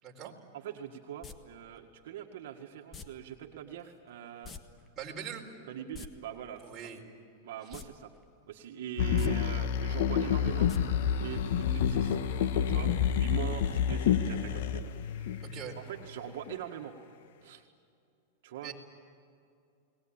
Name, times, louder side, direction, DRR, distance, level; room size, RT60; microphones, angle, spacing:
voice 1, 0.2-4.5 5.7-6.6 7.4-8.1 8.5-10.7 11.2-12.2 12.7-15.4 15.8-16.9 17.4-17.6 18.4-18.7, right 9 dB, 70° right, 2 dB, 1.9 m, -42 dB
sound 1, 1.2-1.4 2.9-3.1 4.4-4.6 4.9-5.0 5.8-6.1 7.7-7.9 8.2-8.3 9.1-9.3 10.7-10.8 11.1-11.2, left 5 dB, 20° left, 1.5 m, -45 dB
voice 2, 5.0-5.5 6.6-7.0 7.7-7.8 15.4-15.8 18.6-18.7, right 8 dB, 25° right, -1 dB, 4.6 m, -42 dB
sound 2, 9.0-15.9 16.5-16.6, left 8 dB, 65° left, 1.4 m, -29 dB
30.0 x 20.0 x 8.9 m, 2.4 s
supercardioid pair, 140°, 0 cm